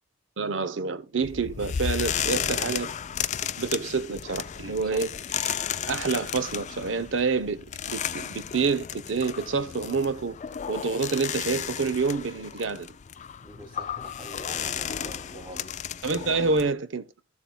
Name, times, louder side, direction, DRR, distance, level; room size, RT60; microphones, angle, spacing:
voice 1, 0.4-2.9 3.6-5.1 5.4-5.6 5.9-10.4 10.7-12.9 16.0-17.1, right 4 dB, 70° right, 0.7 m, -27 dB
sound 1, 1.2-16.7, left 9 dB, 40° left, 0.4 m, -33 dB
voice 2, 2.3-2.8 4.9-5.0 13.4-15.7, right 1 dB, 25° right, 2.8 m, -43 dB
13.0 x 7.2 x 2.2 m
head